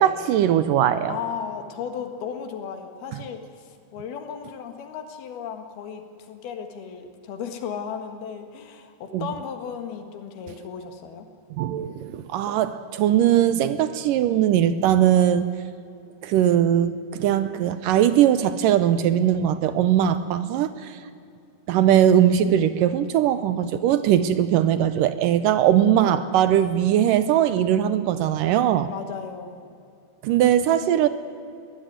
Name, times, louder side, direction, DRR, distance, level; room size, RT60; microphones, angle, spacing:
voice 1, 0.0-1.1 9.1-9.3 11.6-15.5 16.2-21.0 21.7-28.9 30.2-31.1, right 10 dB, 75° right, 13 dB, 2.2 m, -20 dB
voice 2, 1.1-11.3 28.9-29.6, left 7 dB, 85° left, 7 dB, 3.7 m, -35 dB
22.0 x 16.5 x 9.5 m, 2.5 s
omnidirectional pair, 4.3 m